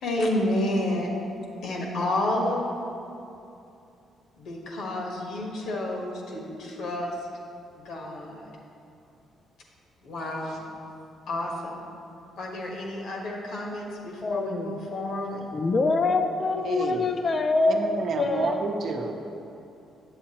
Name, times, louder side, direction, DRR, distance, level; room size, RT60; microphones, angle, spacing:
voice 1, 0.0-1.1 1.6-2.6 4.4-7.2 7.8-8.5 10.0-10.6 11.3-11.8 12.4-15.4, left 1 dB, 75° left, -1 dB, 1.3 m, -30 dB
voice 2, 14.2-14.8 15.5-18.6, left 3 dB, 35° left, 6 dB, 0.5 m, -25 dB
voice 3, 16.6-17.0 17.7-19.1, right 4 dB, 60° right, 3 dB, 0.7 m, -29 dB
8.1 x 7.4 x 2.9 m, 2.7 s
cardioid pair, 90°, 0 cm